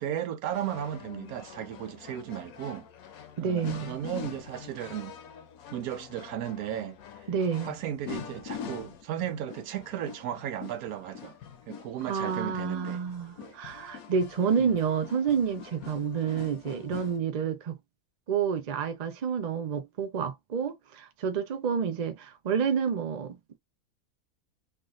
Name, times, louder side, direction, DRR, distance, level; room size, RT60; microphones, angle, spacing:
voice 1, 0.0-2.8 3.4-5.1 5.7-7.0 7.6-11.4 11.7-13.0 13.4-13.6 14.6-14.7, right 10 dB, 85° right, 1.1 m, -35 dB
sound 1, 0.5-17.2, left 8 dB, 80° left, 1.1 m, -45 dB
voice 2, 3.4-4.0 7.3-7.8 12.0-17.8 18.3-23.6, right 7 dB, 70° right, 0.4 m, -29 dB
3.5 x 2.5 x 2.4 m
omnidirectional pair, 1.5 m